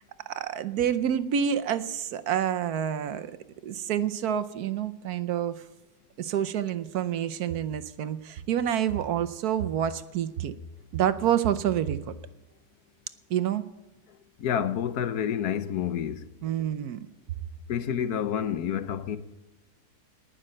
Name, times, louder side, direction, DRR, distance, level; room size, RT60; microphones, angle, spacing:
voice 1, 0.0-3.3 3.6-5.5 6.2-10.5 10.9-12.1 13.3-13.6 16.4-17.1, right 9 dB, 70° right, 1.2 m, -28 dB
voice 2, 14.4-16.2 17.7-19.2, left 9 dB, 70° left, 1.3 m, -28 dB
19.0 x 6.6 x 8.9 m
omnidirectional pair, 1.7 m